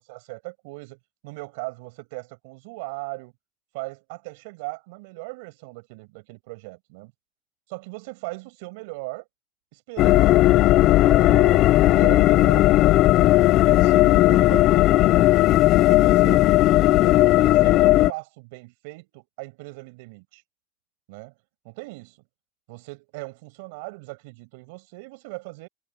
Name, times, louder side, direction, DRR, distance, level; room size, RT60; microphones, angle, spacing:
voice 1, 0.1-1.0 1.2-3.3 3.7-7.1 7.7-9.2 9.7-10.5 11.1-15.3 15.9-20.4 21.1-21.3 21.6-22.2 22.7-25.7, right 26 dB, 70° right, 6.7 m, -38 dB
sound 1, 10.0-18.1, left 16 dB, 40° left, 0.5 m, -16 dB
cardioid pair, 160°, 0 cm